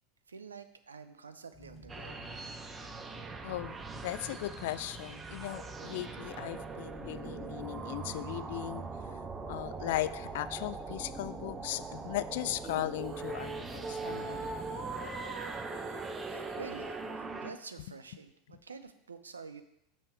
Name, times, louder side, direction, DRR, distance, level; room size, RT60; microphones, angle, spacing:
voice 1, 0.3-2.2 16.3-17.0 17.4-19.6, right 5 dB, 85° right, 10 dB, 0.5 m, -48 dB
sound 1, 1.5-14.9, right 1 dB, 25° left, 1.2 m, -51 dB
sound 2, 1.9-17.5, right 4 dB, 20° right, 0.7 m, -42 dB
voice 2, 3.4-3.8 4.0-8.8 9.5-14.5, left 15 dB, 60° left, 16 dB, 0.3 m, -37 dB
sound 3, 12.6-17.2, right 3 dB, 40° right, 1.3 m, -42 dB
6.6 x 6.2 x 4.5 m, 0.79 s
figure-of-eight pair, 85°, 0 cm